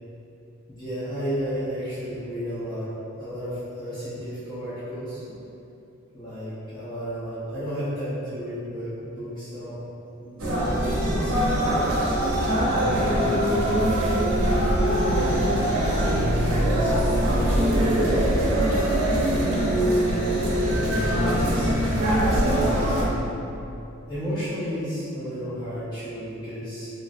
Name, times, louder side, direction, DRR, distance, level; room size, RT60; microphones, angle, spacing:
voice 1, 0.7-2.9 3.2-5.2 6.1-9.9 10.2-11.9 12.5-15.1 15.4-15.8 16.6-18.4 19.4-20.4 20.7-21.7 22.3-23.3 24.1-26.9, equal, 20° left, -14 dB, 0.4 m, -33 dB
sound 1, 10.4-23.0, right 1 dB, 90° right, 0.6 m, -22 dB
3.0 x 2.5 x 2.4 m, 2.8 s
head